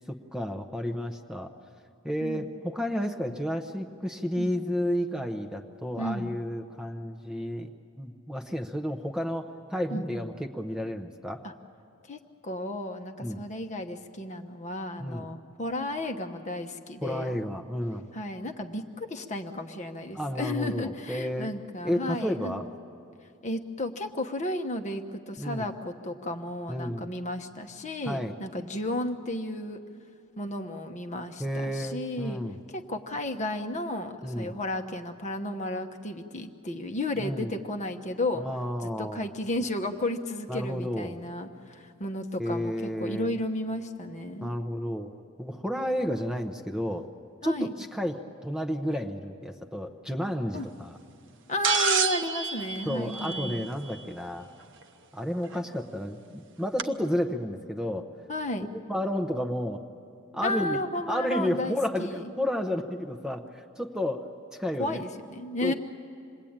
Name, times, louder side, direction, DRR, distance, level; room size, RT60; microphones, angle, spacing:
voice 1, 0.0-1.5 2.0-7.7 8.0-11.4 13.2-13.4 15.0-15.3 17.0-18.0 20.1-21.5 21.8-22.7 25.4-25.6 26.7-27.1 28.0-28.4 31.4-32.6 34.2-34.5 37.2-37.5 38.3-39.3 40.5-41.2 42.4-43.3 44.4-45.1 45.4-47.1 47.4-51.0 52.9-54.5 55.1-58.1 58.7-59.8 60.3-60.8 61.1-64.3 64.6-65.0 65.6-65.7, equal, 5° right, 4 dB, 0.8 m, -31 dB
voice 2, 6.0-6.3 9.9-10.3 11.4-11.5 12.0-17.4 18.1-22.6 23.4-29.8 30.4-32.4 32.7-38.4 38.8-44.5 47.4-47.7 50.5-50.7 51.5-53.7 58.3-58.7 60.4-62.2 64.8-65.7, left 1 dB, 35° left, 6 dB, 1.1 m, -33 dB
sound 1, 51.6-53.9 55.5-55.6 56.8-56.9, right 6 dB, 60° right, 0.8 m, -28 dB
27.0 x 21.0 x 8.8 m, 2.4 s
head